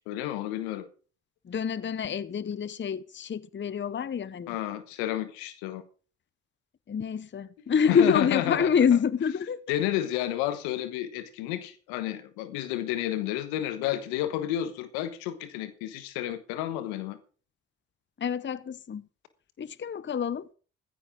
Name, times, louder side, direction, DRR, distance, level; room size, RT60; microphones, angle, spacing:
voice 1, 0.1-0.9 4.5-5.8 7.9-8.8 9.7-17.2, left 13 dB, 80° left, 1.3 m, -31 dB
voice 2, 1.4-4.6 6.9-9.6 18.2-19.1 19.6-20.5, left 7 dB, 30° left, 0.8 m, -27 dB
15.0 x 14.0 x 3.8 m
hypercardioid pair, 45°, 37 cm